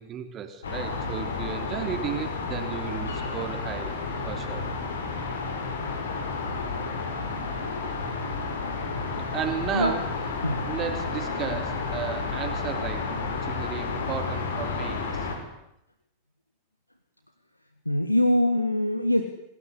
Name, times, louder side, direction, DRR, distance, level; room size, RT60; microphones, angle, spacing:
voice 1, 0.0-4.7 9.3-10.1 10.6-15.3, right 8 dB, 30° right, 6 dB, 3.6 m, -34 dB
sound 1, 0.6-15.4, left 4 dB, 65° left, 5.8 m, -31 dB
voice 2, 17.8-19.2, left 1 dB, 85° left, 9 dB, 1.8 m, -23 dB
27.5 x 19.0 x 9.8 m, 0.82 s
figure-of-eight pair, 90°, 0 cm